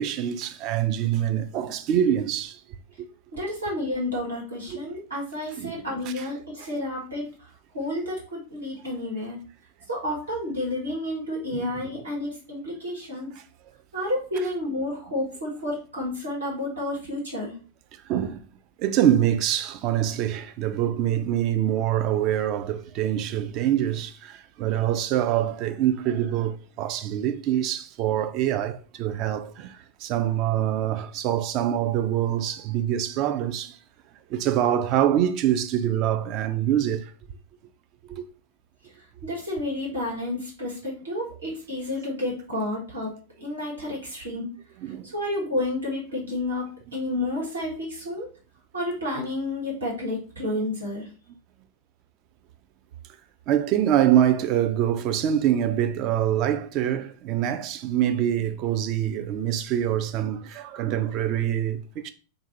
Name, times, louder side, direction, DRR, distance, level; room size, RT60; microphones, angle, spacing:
voice 1, 0.0-2.6 4.7-4.8 5.6-5.7 6.2-6.3 11.5-11.7 18.1-18.4 18.8-33.8 34.3-37.1 38.1-38.2 44.8-45.1 53.5-62.1, right 11 dB, 40° right, 0.3 m, -25 dB
voice 2, 3.3-9.4 9.9-13.3 13.9-17.5 39.2-43.1 43.4-44.5 45.0-48.3 48.7-51.1, left 1 dB, 75° right, 1.3 m, -30 dB
2.5 x 2.3 x 3.8 m
figure-of-eight pair, 90°, 0 cm